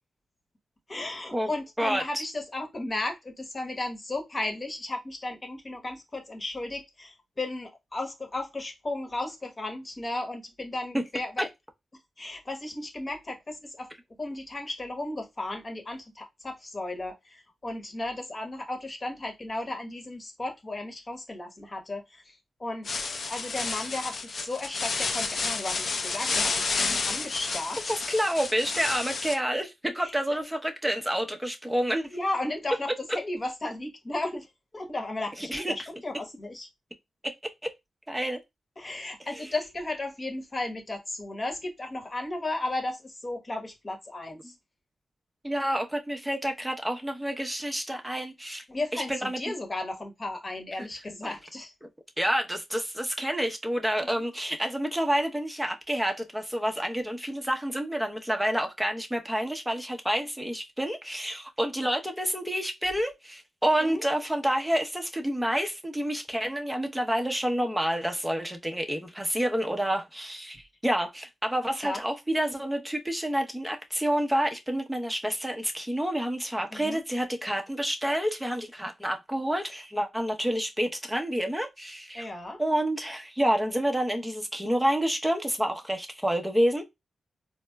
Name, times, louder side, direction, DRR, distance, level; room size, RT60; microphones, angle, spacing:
voice 1, 0.9-11.5 12.2-13.9 14.2-27.8 30.0-30.1 32.1-34.5 34.7-36.7 38.8-44.5 48.7-51.7 54.0-54.2 63.8-64.0 71.8-72.0 76.7-77.0 82.1-82.6, left 2 dB, 40° left, 1.0 m, -35 dB
voice 2, 1.8-2.2 10.9-11.0 26.8-27.0 27.9-32.2 35.4-35.9 37.6-37.7 38.1-38.4 45.4-48.6 48.9-49.4 50.8-50.9 51.2-51.3 52.2-82.3 82.6-86.8, equal, 10° right, 0.8 m, -28 dB
sound 1, 22.8-29.4, left 4 dB, 65° left, 0.5 m, -30 dB
4.3 x 2.0 x 2.2 m
cardioid pair, 45°, 0 cm